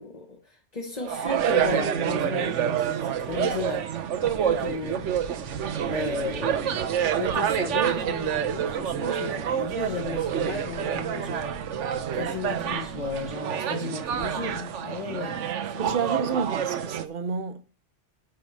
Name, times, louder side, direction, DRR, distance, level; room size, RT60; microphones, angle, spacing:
voice 1, 0.0-5.2 5.8-11.8 12.1-15.4 15.7-16.0, left 4 dB, 35° left, 1.3 m, -35 dB
sound 1, 1.0-17.0, right 9 dB, 90° right, 1.1 m, -28 dB
sound 2, 4.2-13.4, left 2 dB, 75° left, 2.1 m, -45 dB
voice 2, 15.8-17.6, right 5 dB, 50° right, 1.0 m, -29 dB
8.9 x 4.7 x 7.5 m
omnidirectional pair, 1.2 m